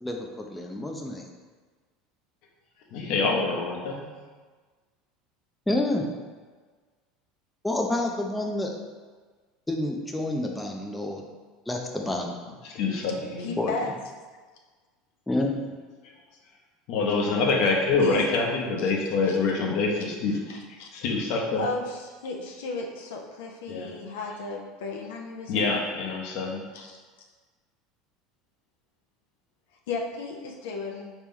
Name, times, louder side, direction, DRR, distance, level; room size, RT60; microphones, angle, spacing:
voice 1, 0.0-1.3 5.7-6.1 7.6-8.7 9.7-11.2 11.7-12.3 13.6-13.9 15.3-15.6, left 1 dB, 5° left, 1 dB, 0.5 m, -28 dB
voice 2, 2.9-4.0 12.6-13.5 16.9-20.4 20.9-21.6 23.7-23.9 25.5-26.6, left 3 dB, 65° left, 0 dB, 0.9 m, -25 dB
voice 3, 13.4-13.9 18.0-18.2 18.8-18.9 19.2-19.4 20.5-20.9 21.5-25.7 26.7-27.0 29.9-31.1, left 3 dB, 85° left, 0 dB, 0.5 m, -35 dB
4.0 x 3.0 x 3.7 m, 1.4 s
supercardioid pair, 115°, 0 cm